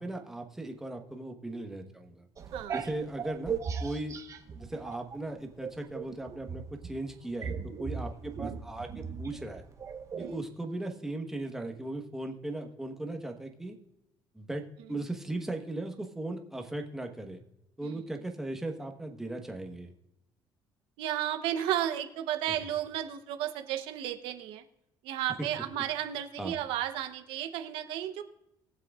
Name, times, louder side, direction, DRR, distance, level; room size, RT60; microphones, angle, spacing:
voice 1, 0.0-2.2 2.7-4.2 4.6-9.6 10.2-13.8 14.3-17.4 17.8-19.9 25.4-25.5 26.4-26.5, right 2 dB, 5° right, 3 dB, 1.2 m, -38 dB
sound 1, 2.4-5.2 5.6-10.4, right 6 dB, 35° right, 1.1 m, -38 dB
voice 2, 21.0-24.6 25.0-28.2, right 11 dB, 85° right, 8 dB, 0.9 m, -33 dB
22.0 x 7.7 x 2.4 m, 0.86 s
cardioid pair, 130°, 9 cm